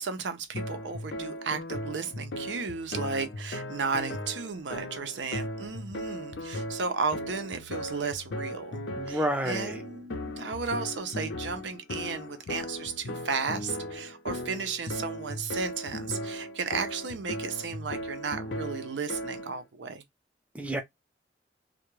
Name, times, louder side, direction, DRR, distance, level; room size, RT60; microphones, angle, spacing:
voice 1, 0.0-8.8 9.1-20.0, right 5 dB, 90° right, 0.5 m, -34 dB
sound 1, 0.5-19.6, left 1 dB, 80° left, 0.5 m, -37 dB
voice 2, 9.0-9.8 20.5-20.8, right 1 dB, 10° right, 0.4 m, -29 dB
2.3 x 2.1 x 3.0 m
head